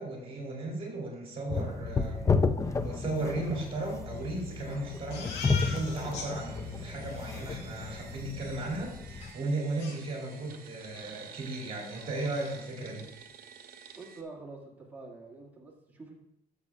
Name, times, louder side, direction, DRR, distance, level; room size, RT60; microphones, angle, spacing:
voice 1, 0.0-2.4 2.6-13.1, right 2 dB, 35° right, -1 dB, 2.8 m, -36 dB
sound 1, 1.5-9.3, left 4 dB, 20° left, 0.4 m, -32 dB
sound 2, 3.0-14.2, right 8 dB, 60° right, 1.0 m, -52 dB
Crying sobbing, 5.1-6.3 6.7-6.8 7.0-7.4 9.2-9.3 9.8-10.6 10.9-11.1 11.4-11.5 11.9-12.6, left 4 dB, 90° left, 1.9 m, -41 dB
voice 2, 13.9-16.1, right 3 dB, 10° right, -3 dB, 2.0 m, -46 dB
12.5 x 7.2 x 2.4 m, 0.78 s
cardioid pair, 110°, 17 cm